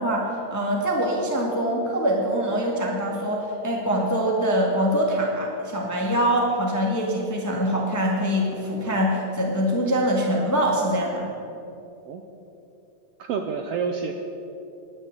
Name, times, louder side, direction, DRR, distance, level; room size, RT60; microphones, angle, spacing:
voice 1, 0.0-11.3, equal, 10° left, -2 dB, 1.0 m, -24 dB
voice 2, 13.2-14.1, right 6 dB, 75° right, 4 dB, 1.5 m, -28 dB
11.0 x 9.7 x 8.1 m, 2.8 s
omnidirectional pair, 3.3 m